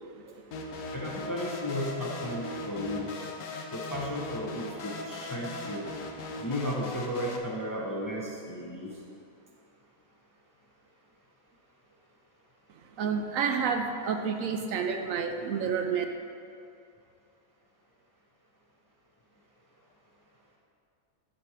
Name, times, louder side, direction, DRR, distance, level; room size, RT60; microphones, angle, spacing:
sound 1, 0.5-7.4, left 2 dB, 65° left, 1.1 m, -39 dB
voice 1, 0.9-3.1 3.7-5.8 6.4-8.9, equal, 20° left, -3 dB, 0.6 m, -34 dB
voice 2, 13.0-16.0, right 6 dB, 70° right, 5 dB, 0.9 m, -29 dB
10.5 x 4.4 x 4.8 m, 2.5 s
omnidirectional pair, 1.5 m